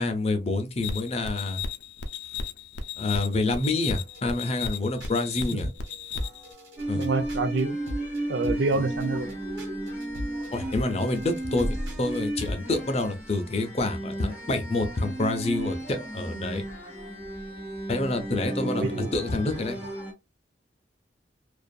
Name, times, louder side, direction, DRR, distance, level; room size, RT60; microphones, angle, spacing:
voice 1, 0.0-1.6 3.0-5.7 6.9-7.1 8.7-8.8 10.5-11.7 12.0-16.6 17.9-19.8, left 2 dB, 35° left, 0.5 m, -27 dB
sound 1, 0.8-6.5, left 5 dB, 85° left, 0.5 m, -35 dB
sound 2, 3.9-12.8, left 1 dB, 90° right, 1.4 m, -40 dB
sound 3, 6.8-20.1, right 1 dB, 10° right, 0.8 m, -34 dB
voice 2, 6.9-7.8 8.3-9.3 18.7-19.1, right 3 dB, 70° right, 0.4 m, -27 dB
2.6 x 2.4 x 2.2 m
head